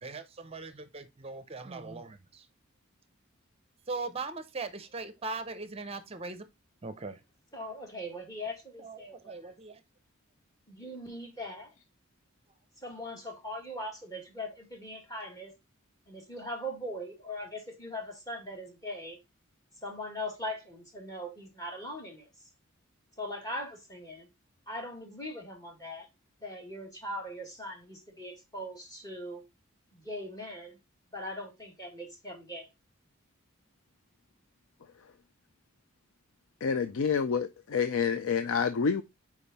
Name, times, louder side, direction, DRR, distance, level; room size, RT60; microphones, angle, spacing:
voice 1, 0.0-2.4 3.9-6.4 6.8-7.2 8.8-9.8, right 3 dB, 30° right, 0.6 m, -40 dB
voice 2, 7.5-9.6 10.7-11.7 12.8-15.5 16.1-19.2 19.8-22.3 23.2-24.3 24.7-26.1 26.4-29.4 29.9-30.8 31.1-32.7, left 1 dB, 15° left, 1.9 m, -40 dB
voice 3, 36.6-39.0, left 6 dB, 75° left, 0.5 m, -28 dB
5.3 x 4.8 x 4.1 m
head